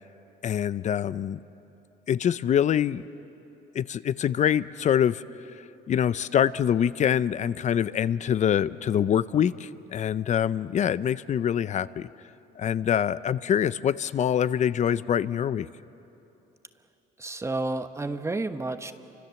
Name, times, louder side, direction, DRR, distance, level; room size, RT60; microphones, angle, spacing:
voice 1, 0.4-1.4 2.1-3.0 3.7-5.2 5.9-12.1 12.6-15.7, left 9 dB, 45° left, 16 dB, 0.6 m, -25 dB
voice 2, 17.2-18.9, right 2 dB, 15° right, 9 dB, 1.1 m, -30 dB
29.5 x 25.5 x 7.1 m, 2.9 s
cardioid pair, 110°, 17 cm